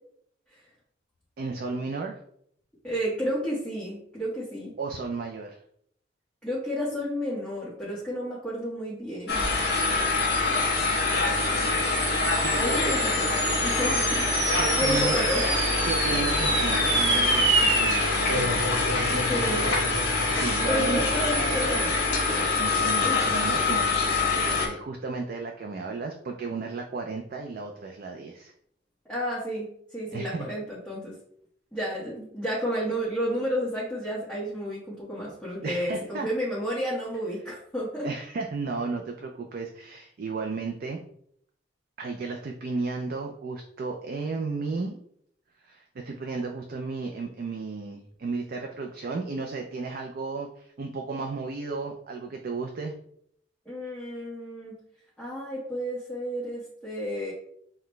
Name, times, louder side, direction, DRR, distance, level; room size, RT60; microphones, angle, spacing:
voice 1, 1.4-2.2 4.8-5.6 12.4-12.9 14.6-15.2 15.8-18.5 20.3-21.0 22.6-28.5 30.1-30.5 35.6-36.3 38.0-41.0 42.0-45.0 45.6-52.9, right 4 dB, 50° right, 2 dB, 0.4 m, -33 dB
voice 2, 2.8-4.7 6.4-9.5 12.6-13.2 13.6-14.3 14.8-15.5 19.1-19.8 20.7-22.0 22.3-22.5 22.8-23.1 29.1-31.1 31.7-38.1 53.6-54.8 55.2-57.3, equal, 5° left, -9 dB, 1.1 m, -31 dB
sound 1, 9.3-24.7, left 3 dB, 60° left, 1.0 m, -25 dB
sound 2, 10.8-21.5, right 2 dB, 65° right, 1.0 m, -29 dB
5.8 x 2.2 x 3.1 m, 0.68 s
head